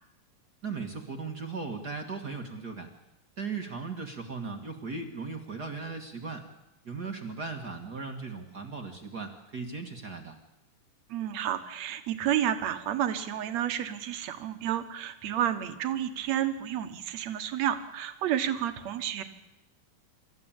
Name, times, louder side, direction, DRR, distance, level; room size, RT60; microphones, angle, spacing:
voice 1, 0.6-2.9 3.4-6.4 6.8-10.4, right 4 dB, 40° right, 4 dB, 1.4 m, -37 dB
voice 2, 11.1-19.2, right 10 dB, 60° right, 9 dB, 2.3 m, -30 dB
27.0 x 14.0 x 8.9 m, 0.94 s
omnidirectional pair, 4.0 m